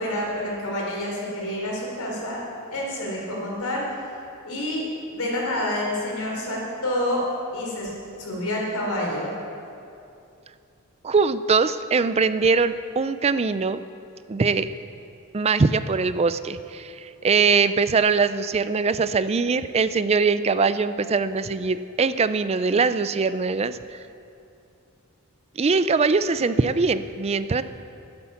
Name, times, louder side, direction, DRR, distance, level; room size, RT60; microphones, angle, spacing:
voice 1, 0.0-2.4 2.7-3.8 4.4-4.9 5.1-7.2 7.5-9.4, left 1 dB, 90° left, -2 dB, 4.1 m, -28 dB
voice 2, 11.0-13.8 14.3-14.7 15.3-24.0 25.6-27.6, right 4 dB, 30° right, 13 dB, 0.4 m, -22 dB
12.5 x 11.5 x 7.1 m, 2.6 s
head